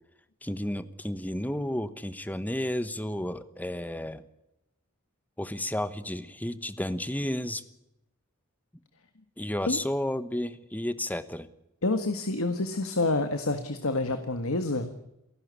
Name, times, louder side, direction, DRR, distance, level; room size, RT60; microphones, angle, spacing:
voice 1, 0.4-4.2 5.4-7.6 9.4-11.5, left 1 dB, 10° left, 13 dB, 1.1 m, -32 dB
voice 2, 11.8-14.9, left 2 dB, 75° left, 8 dB, 1.7 m, -28 dB
29.0 x 11.5 x 8.3 m, 0.88 s
head